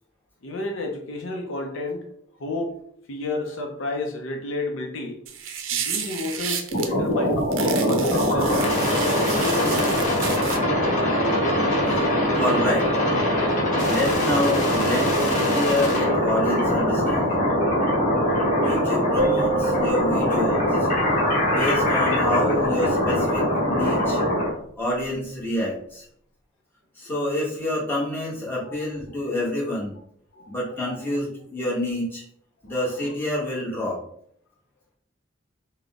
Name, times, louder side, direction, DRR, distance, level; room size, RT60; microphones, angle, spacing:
voice 1, 0.4-2.1 2.4-2.7 3.1-5.2 5.7-10.0 21.2-21.6 28.6-28.8 30.3-30.5 32.7-32.9, left 2 dB, 70° left, 2 dB, 0.6 m, -31 dB
sound 1, 5.3-6.9 7.5-10.6, right 8 dB, 75° right, 0.5 m, -31 dB
sound 2, 6.7-24.5, equal, 40° left, 1.2 m, -22 dB
voice 2, 11.8-12.9 13.4-13.6 13.9-17.5 18.6-20.9 21.5-24.2 24.8-26.0 26.9-30.0 30.5-32.2 32.6-34.0, left 1 dB, 10° left, -6 dB, 1.2 m, -28 dB
sound 3, 19.2-21.4, right 4 dB, 30° right, 0.9 m, -29 dB
3.9 x 2.1 x 3.5 m, 0.67 s
head